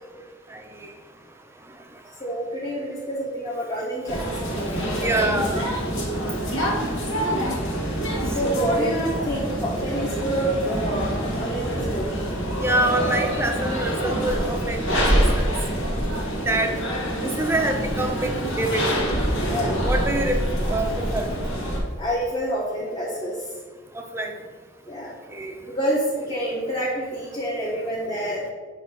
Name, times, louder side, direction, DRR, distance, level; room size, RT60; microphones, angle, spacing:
voice 1, 0.5-0.9 5.0-5.7 6.5-6.8 8.4-8.6 12.6-15.5 16.5-16.7 17.2-18.8 19.9-20.4 20.7-21.3 24.1-24.3 25.3-25.5, right 1 dB, 10° right, 4 dB, 0.6 m, -26 dB
voice 2, 2.2-5.1 8.3-12.1 16.6-16.7 19.4-19.8 22.0-23.5 24.9-25.1 25.7-28.4, equal, 20° left, -6 dB, 1.0 m, -27 dB
sound 1, 4.1-21.8, equal, 85° left, 1.8 m, -26 dB
7.3 x 3.2 x 5.6 m, 1.4 s
head